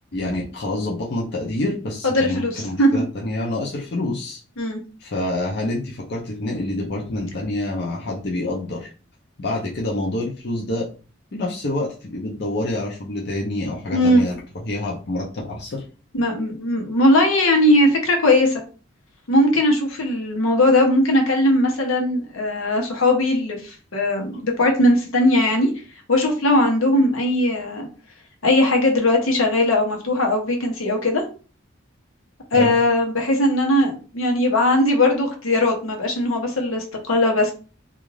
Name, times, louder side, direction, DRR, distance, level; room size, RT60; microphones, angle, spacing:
voice 1, 0.1-4.4 5.0-8.9 9.4-10.9 11.3-14.4 14.6-15.8 32.5-32.7, left 1 dB, 55° left, -3 dB, 0.6 m, -27 dB
voice 2, 2.0-3.0 4.6-4.8 13.9-14.3 16.1-18.6 19.3-25.7 26.1-27.9 28.4-31.2 32.5-37.5, left 1 dB, 85° left, 2 dB, 0.9 m, -19 dB
2.4 x 2.4 x 3.1 m, 0.36 s
head